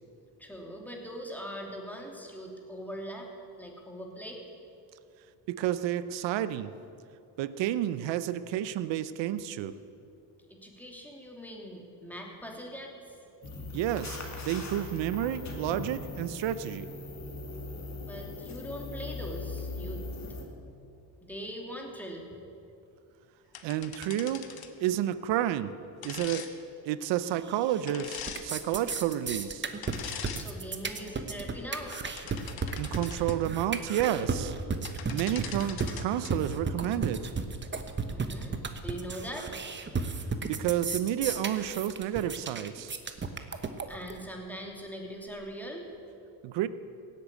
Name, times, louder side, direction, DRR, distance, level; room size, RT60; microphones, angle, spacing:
voice 1, 0.4-3.3 3.6-4.4 10.5-13.3 17.9-20.0 21.2-22.2 30.3-32.0 38.1-38.5 38.8-39.5 43.5-43.6 43.9-45.9, equal, 5° left, 0 dB, 2.9 m, -41 dB
voice 2, 5.5-6.7 7.4-9.8 13.7-14.2 14.5-16.9 23.6-24.4 24.8-25.7 26.0-26.5 26.8-29.6 32.8-34.5 35.1-37.3 40.5-42.9 46.4-46.7, right 11 dB, 75° right, 14 dB, 0.8 m, -30 dB
sound 1, 13.4-20.4, left 2 dB, 40° left, 2.6 m, -39 dB
sound 2, 23.5-24.8 26.0-26.5 27.9-28.4 29.8-30.5 31.0-31.1 31.8-33.4 34.6-34.7 34.8-36.3, left 8 dB, 55° left, 1.4 m, -42 dB
sound 3, 27.5-27.9 28.2-44.2, right 4 dB, 25° right, 1.1 m, -34 dB
16.5 x 8.5 x 8.5 m, 2.6 s
cardioid pair, 90°, 44 cm